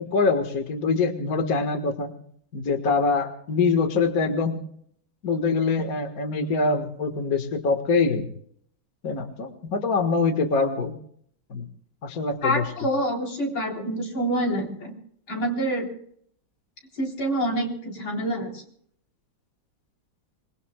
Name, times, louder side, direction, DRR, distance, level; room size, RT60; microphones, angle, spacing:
voice 1, 0.0-2.1 2.5-4.7 5.2-8.3 9.0-11.0 11.5-11.7 12.0-12.6, left 4 dB, 45° left, 5 dB, 1.9 m, -24 dB
voice 2, 12.4-15.0 15.3-15.9 17.0-18.6, right 1 dB, 85° left, 0 dB, 4.7 m, -27 dB
26.5 x 21.5 x 2.3 m, 0.64 s
omnidirectional pair, 2.2 m